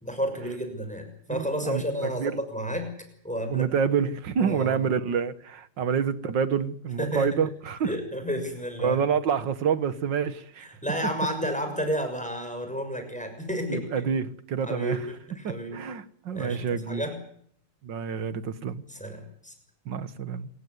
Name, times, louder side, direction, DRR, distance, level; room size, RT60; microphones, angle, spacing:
voice 1, 0.0-2.9 3.2-3.7 4.4-4.8 7.0-7.3 7.8-9.0 10.8-14.1 14.6-15.0 15.3-15.8 16.3-17.2 18.9-19.5, equal, 5° left, 6.1 m, -31 dB
voice 2, 1.3-2.4 3.5-7.9 8.8-10.7 13.7-15.1 15.4-17.1 17.8-18.8 19.9-20.5, right 7 dB, 60° right, 1.9 m, -28 dB
27.0 x 15.5 x 9.6 m
omnidirectional pair, 2.3 m